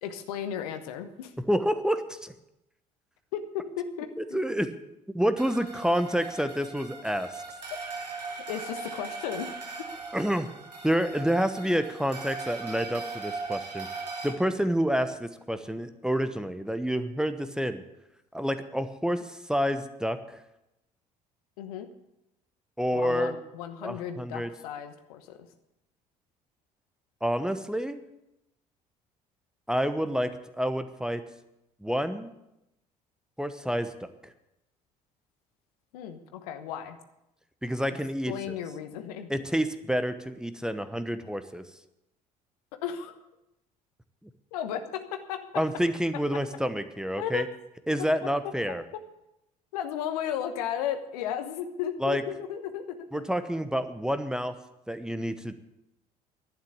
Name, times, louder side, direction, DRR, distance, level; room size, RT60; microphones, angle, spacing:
voice 1, 0.0-1.3 3.3-4.4 7.7-7.8 8.5-9.5 21.6-21.9 22.9-25.4 35.9-37.0 38.3-39.3 42.8-43.1 44.5-45.4 47.2-47.4 49.7-53.2, left 9 dB, 70° left, 8 dB, 1.2 m, -34 dB
voice 2, 1.5-2.3 4.2-4.7 5.1-7.4 10.1-10.5 10.8-13.9 14.2-17.8 18.3-20.4 22.8-23.3 23.8-24.5 27.2-28.0 29.7-31.2 31.8-32.3 33.4-34.3 37.6-38.5 39.3-41.6 45.5-47.5 47.9-48.8 52.0-52.2 53.1-54.5 54.9-55.5, equal, 5° right, 11 dB, 1.0 m, -28 dB
sound 1, 5.4-14.3, right 4 dB, 85° right, 1.4 m, -39 dB
11.5 x 9.4 x 8.7 m, 0.88 s
figure-of-eight pair, 55°, 20 cm